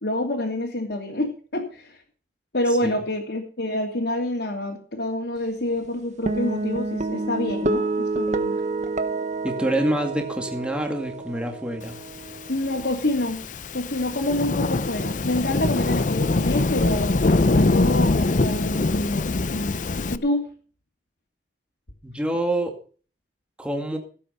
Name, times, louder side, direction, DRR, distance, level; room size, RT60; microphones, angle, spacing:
voice 1, 0.0-2.0 2.5-8.6 12.5-13.4 13.7-19.8 20.1-20.5, left 1 dB, 70° left, -1 dB, 2.7 m, -27 dB
sound 1, 6.3-12.8, right 2 dB, 45° right, 1.2 m, -28 dB
voice 2, 9.4-12.0 22.0-22.7 23.6-24.0, right 1 dB, 5° right, 3 dB, 2.2 m, -26 dB
Thunderstorm / Rain, 12.5-20.2, left 2 dB, 45° left, 0.6 m, -23 dB
17.0 x 8.4 x 5.5 m, 0.41 s
head